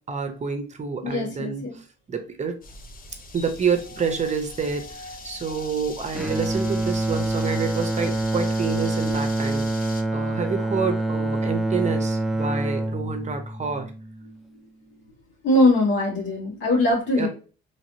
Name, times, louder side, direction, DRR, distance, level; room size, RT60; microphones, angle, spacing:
voice 1, 0.1-2.6 3.3-13.9 17.2-17.3, right 5 dB, 35° right, 7 dB, 0.7 m, -28 dB
voice 2, 1.0-1.8 15.4-17.3, left 1 dB, 70° left, -3 dB, 1.7 m, -21 dB
Ambience Jacksonville Zoo A, 2.6-10.0, left 3 dB, 45° left, 0.6 m, -41 dB
Bowed string instrument, 6.1-14.4, right 1 dB, ahead, 0.3 m, -26 dB
3.1 x 2.8 x 2.7 m, 0.37 s
cardioid pair, 90°, 20 cm